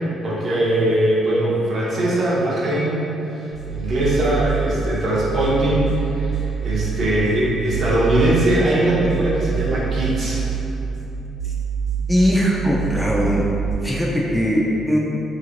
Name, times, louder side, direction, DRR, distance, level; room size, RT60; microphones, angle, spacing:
voice 1, 0.2-3.0 3.3-10.4, right 1 dB, 55° right, -7 dB, 0.8 m, -21 dB
sound 1, 3.5-13.7, right 6 dB, 60° left, 0.7 m, -26 dB
voice 2, 12.1-13.5 13.8-15.0, equal, 5° left, -3 dB, 0.3 m, -20 dB
3.0 x 2.8 x 2.5 m, 3.0 s
cardioid pair, 85°, 0 cm